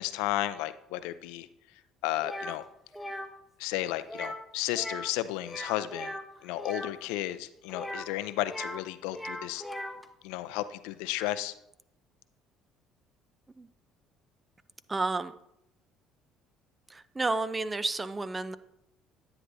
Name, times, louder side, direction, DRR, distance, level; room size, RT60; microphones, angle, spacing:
voice 1, 0.0-1.5 2.0-2.6 3.6-9.6 10.2-11.5, left 15 dB, 80° left, 13 dB, 0.5 m, -33 dB
sound 1, 2.2-2.6 2.9-3.3 4.1-4.5 4.7-5.1 5.4-6.9 7.7-8.8 9.1-10.0, left 1 dB, 5° left, 0.9 m, -39 dB
voice 2, 14.9-15.3 16.9-18.6, right 3 dB, 20° right, 14 dB, 0.6 m, -31 dB
9.9 x 9.6 x 2.7 m, 0.80 s
supercardioid pair, 80°, 0 cm